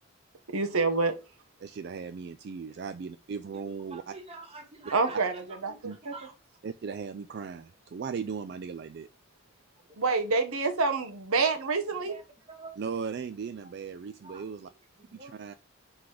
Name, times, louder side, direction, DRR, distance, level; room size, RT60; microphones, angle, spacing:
voice 1, 0.5-1.2 4.9-5.3 5.6-6.1 10.0-12.1, right 4 dB, 80° right, 1.0 m, -27 dB
voice 2, 1.6-4.2 5.1-5.2 5.8-6.0 6.6-9.1 12.8-14.7 15.1-15.5, right 5 dB, 50° right, 0.3 m, -37 dB
voice 3, 3.9-6.4 11.4-11.5 12.0-12.8 13.6-13.8 14.2-15.3, right 3 dB, 25° right, 1.3 m, -48 dB
4.8 x 4.0 x 5.8 m
head